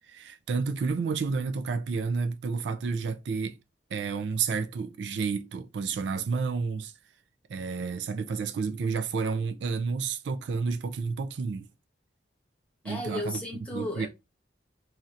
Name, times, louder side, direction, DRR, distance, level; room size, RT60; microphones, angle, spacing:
voice 1, 0.1-3.5 3.9-6.9 7.5-11.7 12.8-13.4 13.7-14.1, right 5 dB, 75° right, 0.3 m, -30 dB
voice 2, 12.8-14.1, left 1 dB, 10° left, 1.1 m, -34 dB
3.2 x 2.7 x 2.4 m
head